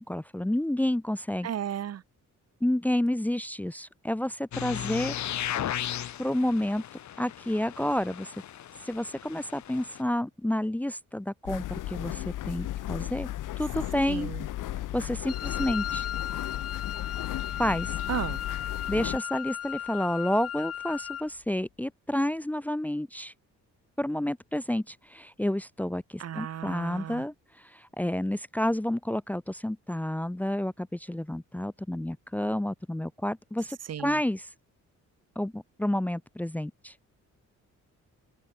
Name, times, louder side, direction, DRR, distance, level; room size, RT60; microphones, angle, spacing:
voice 1, 0.0-1.5 2.6-5.1 6.2-6.8 7.2-8.3 8.8-13.3 13.6-14.3 14.9-16.1 17.6-18.0 18.9-23.3 24.0-34.5 35.4-36.9, left 1 dB, 5° left, 1.0 m, -30 dB
voice 2, 1.4-2.0 14.1-14.5 18.1-18.4 26.2-27.2 33.9-34.2, right 10 dB, 55° right, 1.9 m, -34 dB
sound 1, 4.5-10.0, left 11 dB, 65° left, 3.3 m, -36 dB
sound 2, 11.5-19.2, left 14 dB, 85° left, 1.7 m, -35 dB
Wind instrument woodwind instrument, 15.3-21.3, left 10 dB, 50° left, 1.3 m, -36 dB
cardioid pair, 140°, 30 cm